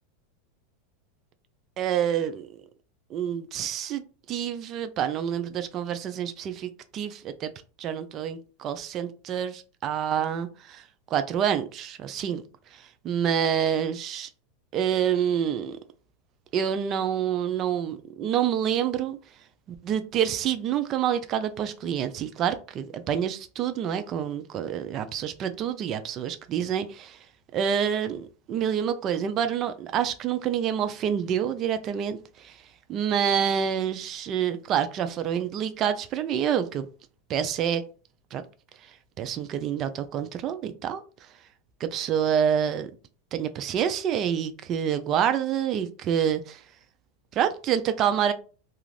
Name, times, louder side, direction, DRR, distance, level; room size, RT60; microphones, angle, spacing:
voice 1, 1.8-2.6 3.1-4.0 4.3-7.5 7.8-10.8 11.1-12.4 13.0-14.3 14.7-15.8 16.5-19.2 19.7-27.2 27.5-32.6 32.9-36.9 37.3-37.8 38.3-38.4 39.2-41.0 41.8-42.9 43.3-46.6 47.3-48.3, right 9 dB, 40° right, 0.4 m, -27 dB
2.4 x 2.4 x 3.1 m
supercardioid pair, 125°, 0 cm